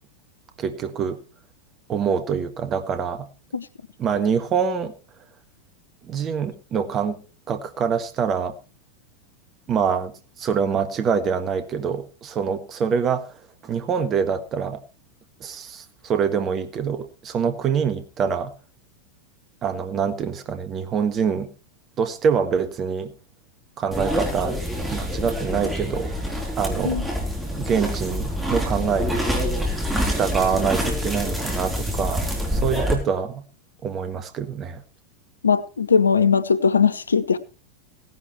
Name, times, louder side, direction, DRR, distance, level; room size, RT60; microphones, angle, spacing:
voice 1, 0.6-1.2 1.9-3.3 4.0-4.9 6.1-7.2 7.5-8.6 9.7-13.3 13.6-14.8 15.4-18.5 19.6-21.5 22.0-23.1 23.8-24.6 24.9-26.1 26.6-27.0 27.5-29.3 30.0-32.2 32.5-33.4 33.8-34.8, right 6 dB, 30° right, 1.6 m, -25 dB
sound 1, 23.9-32.9, equal, 5° right, 3.9 m, -26 dB
voice 2, 35.4-37.4, left 6 dB, 75° left, 0.8 m, -19 dB
17.5 x 11.0 x 3.2 m
figure-of-eight pair, 90°, 0 cm